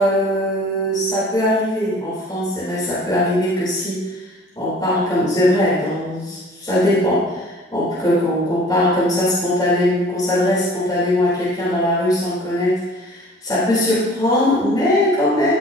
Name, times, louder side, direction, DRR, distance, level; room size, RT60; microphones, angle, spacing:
voice 1, 0.0-15.6, left 1 dB, 20° left, -10 dB, 4.0 m, -20 dB
14.5 x 9.7 x 2.9 m, 1.2 s
head